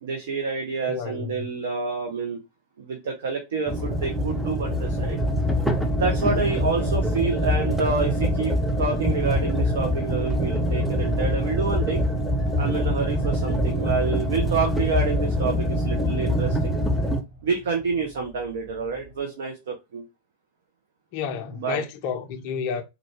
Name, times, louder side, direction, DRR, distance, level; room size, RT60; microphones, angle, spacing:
voice 1, 0.0-2.4 2.8-5.2 6.0-12.0 12.6-16.8 17.4-20.0 21.6-21.8, right 4 dB, 60° right, 0.7 m, -28 dB
voice 2, 0.9-1.5 21.1-22.8, left 7 dB, 45° left, 0.5 m, -31 dB
sound 1, 3.7-17.2, equal, ahead, 0.6 m, -24 dB
sound 2, 8.4-19.2, right 1 dB, 40° right, 1.1 m, -50 dB
3.6 x 2.2 x 3.5 m
figure-of-eight pair, 90°, 0 cm